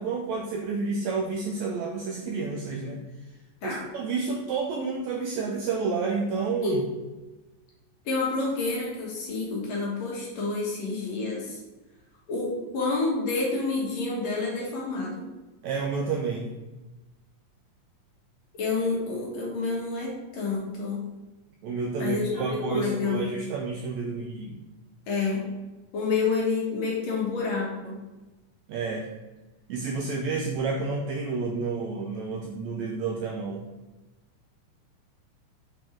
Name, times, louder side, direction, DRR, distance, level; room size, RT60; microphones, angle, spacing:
voice 1, 0.0-3.0 3.6-6.8 15.6-16.6 21.6-24.6 28.7-29.1 29.7-33.6, right 4 dB, 85° right, 1 dB, 1.6 m, -30 dB
voice 2, 8.1-11.6 12.3-15.2 18.5-21.0 22.0-23.5 25.1-25.6 25.9-28.0, left 3 dB, 60° left, -3 dB, 2.2 m, -29 dB
6.6 x 4.2 x 4.4 m, 1.1 s
omnidirectional pair, 3.9 m